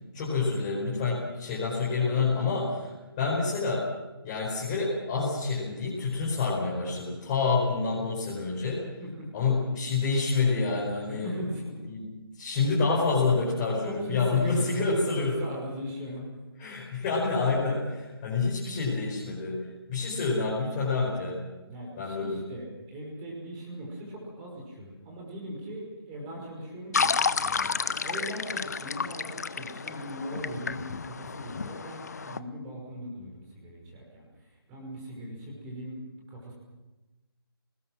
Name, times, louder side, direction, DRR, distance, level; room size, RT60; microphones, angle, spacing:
voice 1, 0.1-3.9 4.2-8.8 9.3-11.3 11.9-12.1 12.3-15.4 16.6-19.6 19.9-21.4 22.0-22.4, left 4 dB, 20° left, -5 dB, 5.0 m, -28 dB
voice 2, 2.0-2.8 9.0-9.3 11.1-11.8 13.8-16.3 21.7-27.7 28.0-34.3 34.7-36.5, equal, 15° right, -1 dB, 5.4 m, -39 dB
sound 1, 26.9-32.4, left 5 dB, 40° left, 0.8 m, -31 dB
28.5 x 20.0 x 6.2 m, 1.1 s
figure-of-eight pair, 150°, 13 cm